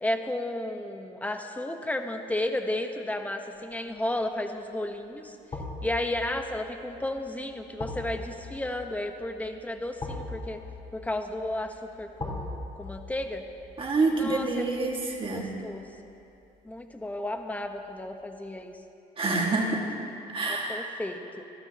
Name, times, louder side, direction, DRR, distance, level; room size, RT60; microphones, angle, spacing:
voice 1, 0.0-5.4 5.8-10.6 10.9-13.4 14.1-14.8 15.2-15.9 16.6-18.8 20.4-21.4, left 1 dB, 10° left, 5 dB, 1.1 m, -33 dB
sound 1, 3.7-4.1 5.5-16.5 16.8-17.0, left 2 dB, 35° left, 3.9 m, -41 dB
voice 2, 13.8-15.5 19.2-19.9 20.3-20.9, right 3 dB, 30° right, 0 dB, 2.0 m, -27 dB
27.0 x 13.5 x 3.0 m, 2.7 s
cardioid pair, 110°, 17 cm